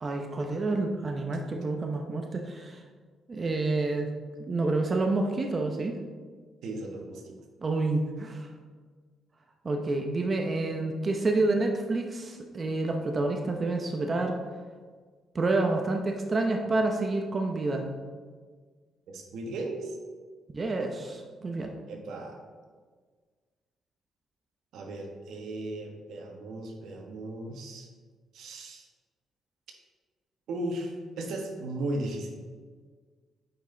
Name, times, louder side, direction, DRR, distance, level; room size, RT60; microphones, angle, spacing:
voice 1, 0.0-2.8 3.3-4.1 4.5-6.0 7.6-8.5 9.6-14.3 15.3-17.8 20.5-21.7, right 2 dB, 35° right, 3 dB, 0.8 m, -28 dB
voice 2, 6.6-7.3 19.1-20.0 21.9-22.4 24.7-27.9 28.3-28.8 30.5-32.3, right 1 dB, 75° right, 2 dB, 1.3 m, -36 dB
8.7 x 5.4 x 3.9 m, 1.5 s
cardioid pair, 90°, 0 cm